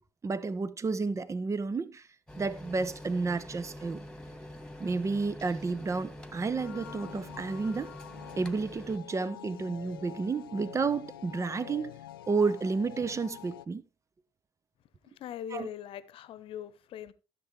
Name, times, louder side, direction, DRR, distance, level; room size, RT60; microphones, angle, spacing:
voice 1, 0.2-2.0 2.4-4.0 4.8-7.9 8.4-11.9 12.3-13.8 15.5-15.7, right 4 dB, 25° right, 1.0 m, -31 dB
sound 1, 2.3-9.0, left 1 dB, 5° left, 2.1 m, -46 dB
sound 2, 6.6-13.7, left 12 dB, 75° left, 0.5 m, -47 dB
voice 2, 15.0-17.1, left 10 dB, 50° left, 1.1 m, -41 dB
14.5 x 7.6 x 3.3 m
figure-of-eight pair, 55°, 12 cm